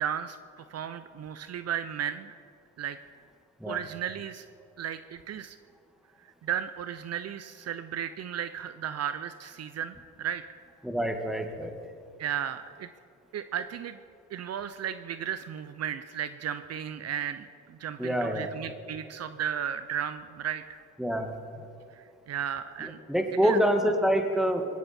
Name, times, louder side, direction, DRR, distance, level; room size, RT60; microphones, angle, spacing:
voice 1, 0.0-2.4 2.8-3.0 3.7-4.5 4.8-5.6 6.4-10.4 12.2-12.9 13.3-14.0 14.3-20.8 21.9-23.0 23.4-23.6, right 9 dB, 55° right, 11 dB, 0.6 m, -34 dB
voice 2, 10.8-11.7 18.0-18.5 21.0-21.4 22.8-24.7, equal, ahead, 5 dB, 1.7 m, -26 dB
20.0 x 16.0 x 4.3 m, 2.5 s
cardioid pair, 90°, 30 cm